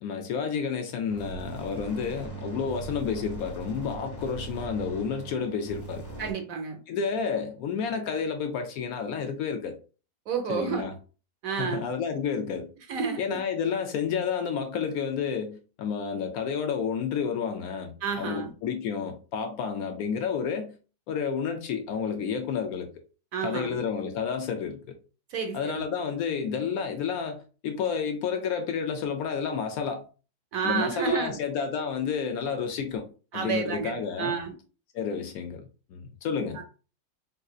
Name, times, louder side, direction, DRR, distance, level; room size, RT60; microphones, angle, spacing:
voice 1, 0.0-6.1 6.9-9.8 10.5-10.9 11.5-12.7 13.2-20.7 21.1-22.9 23.4-25.0 25.5-30.1 30.6-33.1 33.3-34.3 34.9-36.6, left 6 dB, 70° left, 0.9 m, -30 dB
sound 1, 1.1-6.3, right 3 dB, 15° left, 0.7 m, -40 dB
voice 2, 6.2-6.8 10.3-10.9 11.4-11.8 12.9-13.4 18.0-18.5 23.3-23.8 25.3-25.8 30.5-31.4 33.3-34.5 36.5-36.6, right 6 dB, 65° right, 1.0 m, -30 dB
3.9 x 2.7 x 2.3 m
omnidirectional pair, 1.7 m